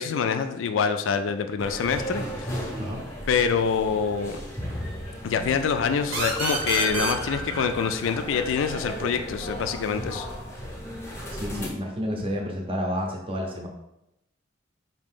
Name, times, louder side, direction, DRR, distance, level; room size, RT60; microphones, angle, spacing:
voice 1, 0.0-2.6 3.3-4.4 5.2-10.3, left 6 dB, 75° left, 9 dB, 0.3 m, -26 dB
sound 1, 1.6-11.7, equal, 15° left, 0.8 m, -35 dB
sound 2, 6.1-9.5, right 3 dB, 80° right, 0.9 m, -31 dB
voice 2, 11.4-13.7, equal, 25° right, 0 dB, 0.6 m, -30 dB
5.0 x 2.7 x 3.6 m, 0.86 s
head